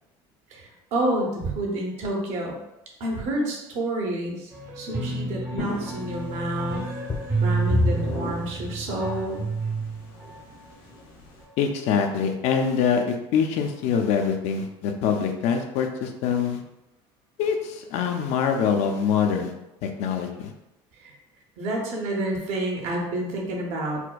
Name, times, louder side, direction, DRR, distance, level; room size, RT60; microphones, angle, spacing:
voice 1, 0.5-2.6 3.0-6.8 7.4-9.4 20.9-21.1 21.6-24.0, right 1 dB, 65° right, -1 dB, 0.9 m, -29 dB
sound 1, 4.5-10.4, right 4 dB, 20° right, 0.6 m, -30 dB
sound 2, 5.6-11.4, equal, 85° left, 1.2 m, -43 dB
sound 3, 7.1-9.5 10.2-10.3 10.9-11.0, left 2 dB, 20° left, 0.6 m, -28 dB
voice 2, 11.6-16.6 17.4-19.5 19.8-20.5, left 6 dB, 65° left, 5 dB, 0.5 m, -24 dB
4.3 x 2.2 x 2.3 m, 0.91 s
cardioid pair, 125°, 12 cm